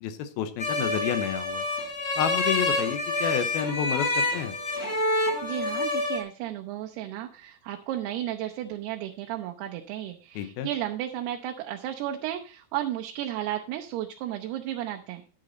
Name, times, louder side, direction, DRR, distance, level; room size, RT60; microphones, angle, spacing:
voice 1, 0.0-1.6 2.2-4.5 10.4-10.7, left 9 dB, 80° left, 11 dB, 2.6 m, -30 dB
sound 1, 0.6-6.2, left 2 dB, 45° left, 0.8 m, -27 dB
voice 2, 5.4-15.2, right 12 dB, 85° right, 4 dB, 2.8 m, -33 dB
10.0 x 9.7 x 4.0 m, 0.37 s
omnidirectional pair, 4.6 m